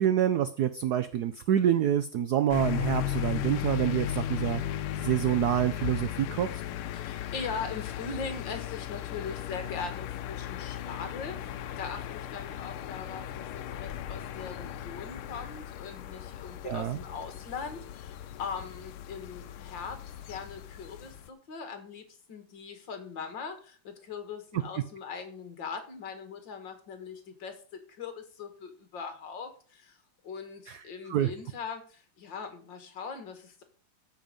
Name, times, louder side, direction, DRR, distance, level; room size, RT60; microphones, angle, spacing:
voice 1, 0.0-6.5 16.6-17.0 30.7-30.8 31.1-31.3, right 10 dB, 85° right, 12 dB, 0.8 m, -27 dB
sound 1, 2.5-21.3, left 11 dB, 85° left, 1.5 m, -36 dB
voice 2, 6.9-27.6 28.0-30.0 30.2-33.6, left 5 dB, 60° left, 8 dB, 2.2 m, -40 dB
14.0 x 5.3 x 5.2 m, 0.42 s
omnidirectional pair, 2.4 m